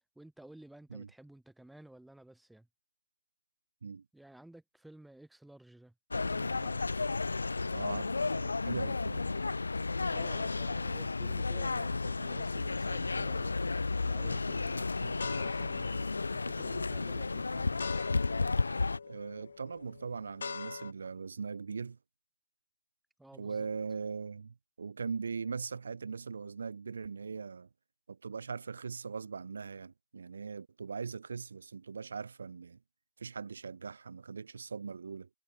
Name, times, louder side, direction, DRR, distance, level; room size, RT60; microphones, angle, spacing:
voice 1, 0.2-2.7 4.1-5.9 10.1-13.6 14.0-17.8 23.2-23.7, right 1 dB, ahead, 1.9 m, -54 dB
sound 1, 6.1-19.0, left 3 dB, 80° left, 2.1 m, -33 dB
voice 2, 7.7-9.4 15.0-15.2 19.1-22.0 23.4-27.7 28.1-32.8 33.2-35.3, right 5 dB, 65° right, 2.0 m, -40 dB
sound 2, 15.2-20.9, left 5 dB, 60° left, 0.7 m, -43 dB
figure-of-eight pair, 150°, 0 cm